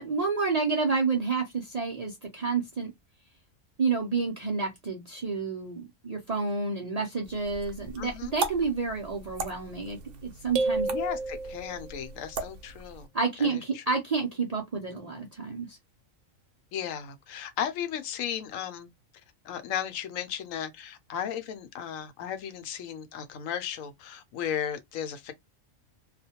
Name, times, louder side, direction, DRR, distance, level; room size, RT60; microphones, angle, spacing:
voice 1, 0.0-2.9 3.8-10.0 10.2-10.9 13.1-15.8, right 4 dB, 55° right, 0.4 m, -29 dB
sound 1, 7.2-13.1, right 4 dB, 70° right, 0.9 m, -39 dB
voice 2, 8.0-8.4 10.9-13.1 13.4-13.8 16.7-18.9 19.4-25.3, left 9 dB, 80° left, 1.0 m, -35 dB
sound 2, 10.6-12.1, right 3 dB, 90° right, 1.0 m, -30 dB
2.4 x 2.1 x 2.7 m
omnidirectional pair, 1.4 m